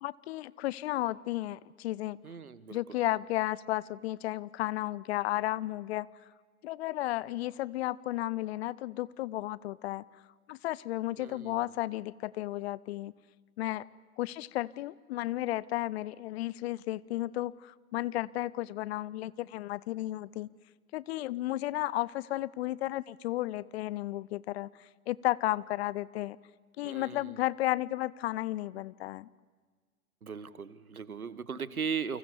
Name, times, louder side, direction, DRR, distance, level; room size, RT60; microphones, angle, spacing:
voice 1, 0.0-2.2 2.7-6.1 6.6-10.0 10.5-13.1 13.6-13.9 14.2-20.5 20.9-26.4 26.8-29.3, left 16 dB, 45° left, 21 dB, 0.8 m, -33 dB
voice 2, 2.2-2.8 11.2-11.6 26.8-27.4 30.2-32.2, right 6 dB, 80° right, 17 dB, 1.4 m, -38 dB
29.5 x 25.0 x 7.1 m, 1.5 s
figure-of-eight pair, 90°, 43 cm